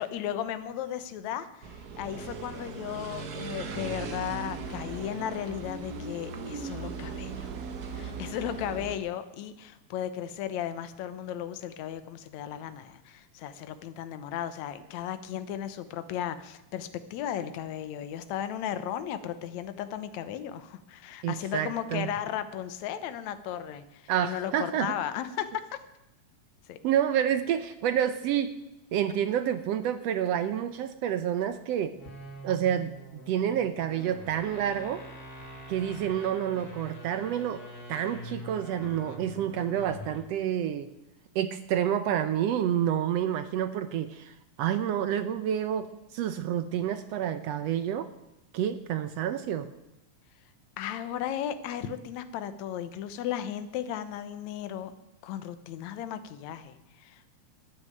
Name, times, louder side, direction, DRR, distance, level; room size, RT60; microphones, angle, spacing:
voice 1, 0.0-7.5 7.9-25.8 26.7-26.8 38.8-39.2 50.8-54.9 55.2-57.3, left 10 dB, 70° left, 11 dB, 2.2 m, -35 dB
sound 1, 1.6-9.0, right 4 dB, 55° right, 1.0 m, -38 dB
voice 2, 21.2-22.1 24.1-24.9 26.8-28.5 28.9-31.9 32.4-32.9 33.3-35.0 35.7-37.6 37.9-40.9 41.3-48.1 48.5-49.7, right 10 dB, 75° right, 11 dB, 1.6 m, -29 dB
sound 2, 31.9-40.4, equal, 35° left, 2.3 m, -44 dB
13.0 x 9.6 x 9.2 m, 0.93 s
omnidirectional pair, 3.5 m